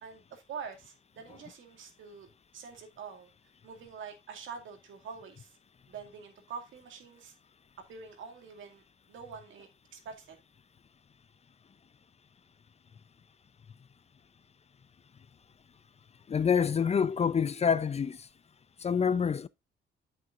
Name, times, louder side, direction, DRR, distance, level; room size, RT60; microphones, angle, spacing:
voice 1, 0.0-2.3 2.5-3.3 3.6-5.6 5.9-7.4 7.9-8.8 9.1-10.4, right 6 dB, 75° right, 2.2 m, -45 dB
voice 2, 16.3-18.3 18.8-19.5, left 6 dB, 35° left, 0.5 m, -27 dB
8.5 x 7.7 x 2.5 m
cardioid pair, 90°, 20 cm